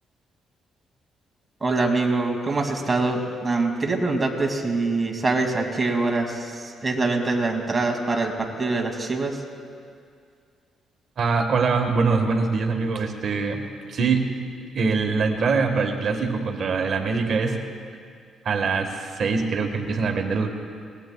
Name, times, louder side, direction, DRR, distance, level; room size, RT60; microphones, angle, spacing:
voice 1, 1.6-8.3 8.6-9.4, right 3 dB, 20° right, 1 dB, 2.2 m, -24 dB
voice 2, 11.2-14.4 14.7-17.6 18.4-20.5, right 4 dB, 60° right, 4 dB, 1.4 m, -23 dB
23.5 x 19.5 x 2.3 m, 2.2 s
cardioid pair, 90°, 0 cm